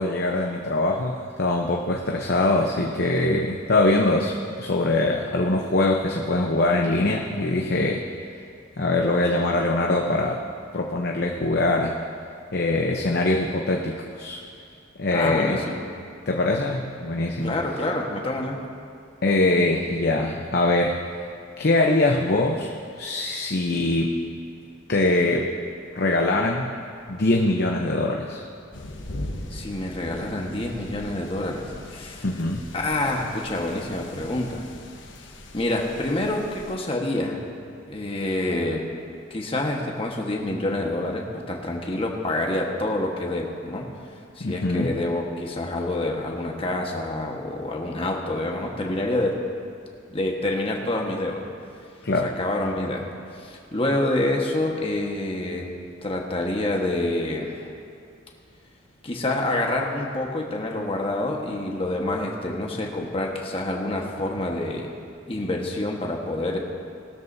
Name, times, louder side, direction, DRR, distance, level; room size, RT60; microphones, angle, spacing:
voice 1, 0.0-8.0 8.8-10.4 10.7-12.0 12.5-14.4 15.0-15.6 16.3-17.6 19.2-21.0 21.6-22.7 23.0-24.2 24.9-25.5 25.9-26.7 27.1-28.4 32.2-32.7 44.4-44.9 52.0-52.3, left 2 dB, 55° left, 0 dB, 0.8 m, -23 dB
voice 2, 15.1-15.8 17.4-18.6 29.5-32.2 32.7-34.6 35.5-37.4 37.9-38.9 39.3-43.9 44.4-49.4 50.1-51.5 52.2-53.1 53.3-55.7 56.0-57.7 59.0-64.9 65.3-66.6, left 1 dB, 30° left, 0 dB, 1.4 m, -27 dB
sound 1, 28.7-36.7, left 1 dB, 70° left, 1.2 m, -40 dB
19.5 x 13.0 x 2.7 m, 2.3 s
head